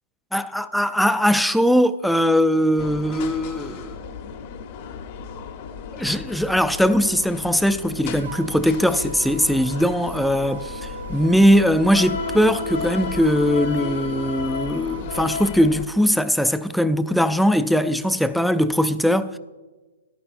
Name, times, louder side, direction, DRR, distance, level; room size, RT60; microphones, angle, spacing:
voice 1, 0.3-3.9 5.9-19.4, equal, ahead, 0.3 m, -20 dB
sound 1, 2.8-15.9, left 5 dB, 40° left, 0.8 m, -33 dB
sound 2, 8.2-15.4, right 5 dB, 70° right, 0.8 m, -40 dB
15.0 x 11.5 x 2.5 m
hypercardioid pair, 155°, 0 cm